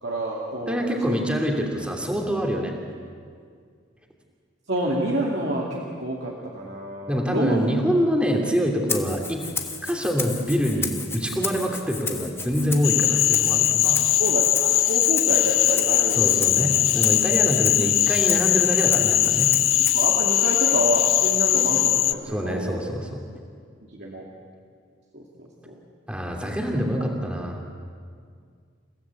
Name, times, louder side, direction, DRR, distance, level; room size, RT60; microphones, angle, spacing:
voice 1, 0.0-1.2 4.7-7.6 13.8-16.7 17.3-17.4 19.9-22.8 23.8-24.2 25.1-25.8 26.9-27.0, right 1 dB, 60° right, -3 dB, 2.5 m, -28 dB
voice 2, 0.7-2.7 7.1-9.4 9.8-14.0 16.2-19.5 22.3-23.2 26.1-27.6, equal, 5° right, 1 dB, 2.7 m, -25 dB
Rattle (instrument), 8.9-20.2, left 4 dB, 15° left, 1.4 m, -33 dB
Cricket / Frog, 12.8-22.1, left 13 dB, 90° left, 0.7 m, -20 dB
29.0 x 17.0 x 8.3 m, 2.1 s
head